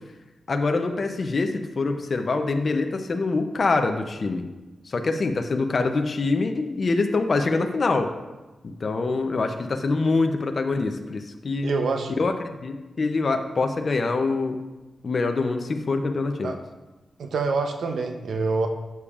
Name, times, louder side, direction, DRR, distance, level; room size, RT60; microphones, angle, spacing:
voice 1, 0.5-4.5 4.9-8.1 8.8-11.7 12.2-14.6 15.0-16.5, left 3 dB, 40° left, 5 dB, 0.5 m, -25 dB
voice 2, 11.6-12.1 16.4-16.6 17.2-18.7, right 4 dB, 85° right, 5 dB, 0.7 m, -26 dB
11.5 x 7.0 x 2.4 m, 1.1 s
wide cardioid pair, 155°, 0 cm